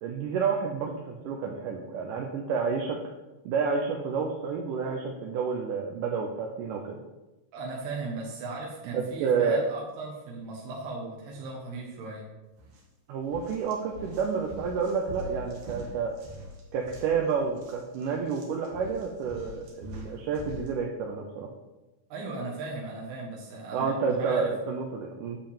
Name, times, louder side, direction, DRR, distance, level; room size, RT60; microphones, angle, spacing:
voice 1, 0.0-3.0 3.5-7.0 8.9-9.6 13.1-16.1 16.7-21.5 23.7-25.4, right 5 dB, 70° right, 1 dB, 2.1 m, -29 dB
voice 2, 7.5-12.3 22.1-24.5, right 3 dB, 90° right, -3 dB, 3.4 m, -37 dB
sound 1, 12.6-12.8 13.2-20.7, left 1 dB, 55° right, 2.6 m, -44 dB
10.5 x 4.7 x 7.3 m, 1.1 s
omnidirectional pair, 4.4 m